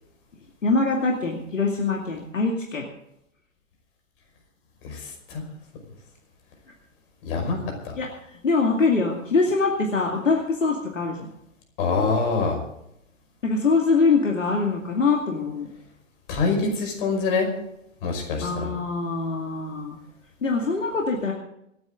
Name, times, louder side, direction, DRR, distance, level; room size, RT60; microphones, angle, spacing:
voice 1, 0.6-2.8 8.0-8.1 8.4-11.3 13.4-15.7 18.4-20.0 20.4-21.3, left 4 dB, 75° left, 0 dB, 2.4 m, -23 dB
voice 2, 4.8-5.4 7.2-7.6 7.8-7.9 11.8-12.6 16.3-17.5 18.0-18.7, left 4 dB, 45° left, 2 dB, 5.5 m, -25 dB
26.0 x 9.5 x 3.8 m, 0.78 s
figure-of-eight pair, 110°, 38 cm